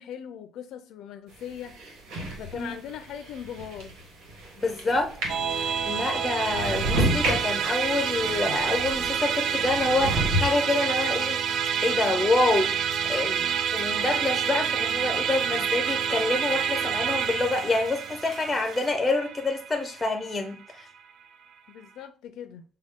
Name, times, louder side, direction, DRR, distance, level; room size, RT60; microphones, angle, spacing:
voice 1, 0.0-1.7 2.4-3.9 21.7-22.6, left 9 dB, 70° left, 0.4 m, -39 dB
sound 1, 1.3-9.2 9.6-10.5, right 1 dB, 90° right, 1.5 m, -31 dB
voice 2, 4.6-5.1 5.5-11.4 11.8-13.4 13.7-20.9, left 2 dB, 10° left, 0.5 m, -27 dB
Musical instrument, 5.3-20.8, right 7 dB, 50° right, 0.3 m, -28 dB
sound 2, 6.6-18.9, right 1 dB, 35° right, 2.1 m, -50 dB
6.3 x 2.2 x 3.6 m
cardioid pair, 150°, 0 cm